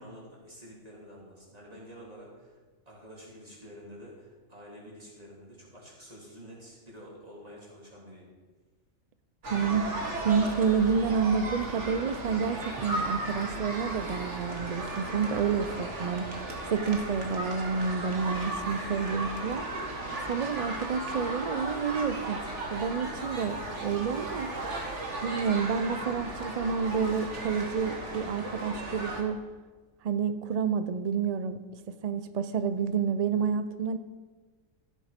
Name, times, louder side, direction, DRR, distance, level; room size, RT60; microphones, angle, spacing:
voice 1, 0.0-2.6 2.8-8.3, equal, 25° right, -4 dB, 3.3 m, -48 dB
sound 1, 9.4-29.2, right 2 dB, 55° right, 2.0 m, -36 dB
voice 2, 9.5-9.9 10.2-16.3 16.7-19.7 20.3-22.4 22.7-24.5 25.2-29.4 30.0-31.6 31.9-34.0, right 6 dB, 80° right, 11 dB, 0.3 m, -29 dB
14.0 x 8.4 x 5.1 m, 1.3 s
omnidirectional pair, 1.4 m